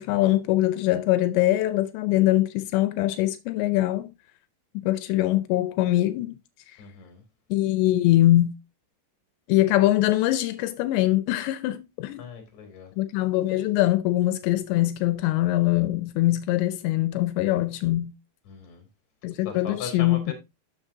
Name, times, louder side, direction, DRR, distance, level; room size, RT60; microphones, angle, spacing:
voice 1, 0.0-4.1 4.7-6.4 7.5-8.5 9.5-12.2 13.0-18.1 19.2-20.3, left 15 dB, 85° left, 2.9 m, -23 dB
voice 2, 6.8-7.2 12.2-12.9 18.5-18.9 19.5-20.3, left 6 dB, 45° left, 3.6 m, -38 dB
12.5 x 6.4 x 2.7 m
omnidirectional pair, 5.0 m